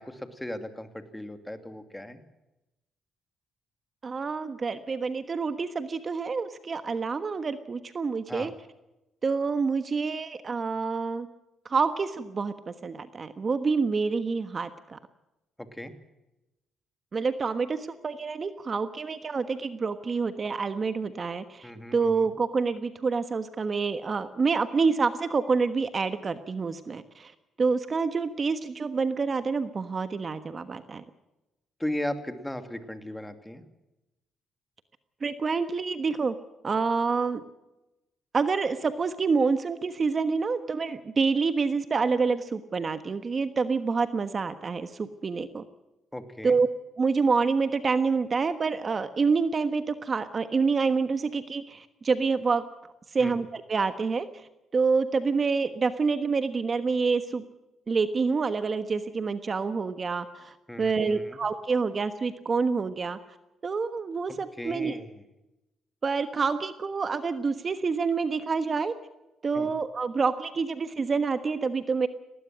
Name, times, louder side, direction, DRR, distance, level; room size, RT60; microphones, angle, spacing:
voice 1, 0.0-2.2 8.3-8.5 15.6-15.9 21.6-22.3 31.8-33.6 46.1-46.6 53.2-53.4 60.7-61.4 64.6-65.2 69.5-69.7, left 1 dB, 5° left, 8 dB, 2.5 m, -37 dB
voice 2, 4.0-8.5 9.2-11.3 11.6-15.0 17.1-27.3 27.6-31.0 35.2-36.3 36.6-37.4 38.3-45.6 46.4-46.7 47.0-52.6 53.1-54.3 54.7-57.4 57.9-63.2 63.6-65.0 66.0-68.9 69.4-72.1, right 4 dB, 40° right, 10 dB, 1.3 m, -27 dB
19.5 x 18.0 x 7.5 m, 0.96 s
cardioid pair, 90°, 0 cm